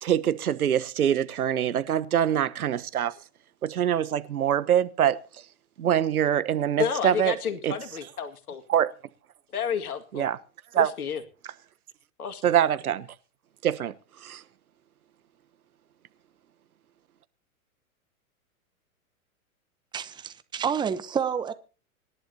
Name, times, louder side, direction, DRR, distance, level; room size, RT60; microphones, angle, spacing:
voice 1, 0.0-3.1 3.6-5.2 5.8-7.3 7.6-7.7 8.7-8.9 10.1-10.4 10.7-10.9 12.4-13.1 13.6-13.9 14.2-14.4, right 10 dB, 80° right, 1.2 m, -24 dB
voice 2, 6.8-8.6 9.5-10.3 10.8-11.2 12.2-12.4, left 7 dB, 80° left, 2.1 m, -31 dB
voice 3, 19.9-21.5, right 7 dB, 10° right, 0.8 m, -29 dB
25.5 x 11.5 x 2.8 m
hypercardioid pair, 115°, 43 cm